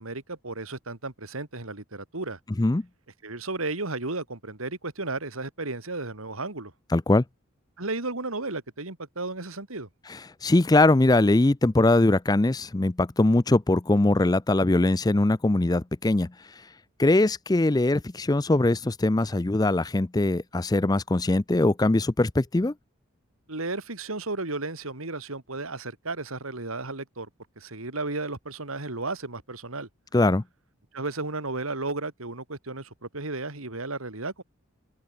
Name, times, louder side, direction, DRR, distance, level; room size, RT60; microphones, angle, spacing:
voice 1, 0.0-2.4 3.2-6.7 7.8-9.9 23.5-27.3 27.6-29.9 30.9-34.4, right 3 dB, 90° right, 3.1 m, -34 dB
voice 2, 6.9-7.2 10.1-16.7 17.0-22.7 30.1-30.4, left 2 dB, 20° left, 0.5 m, -22 dB
open air
head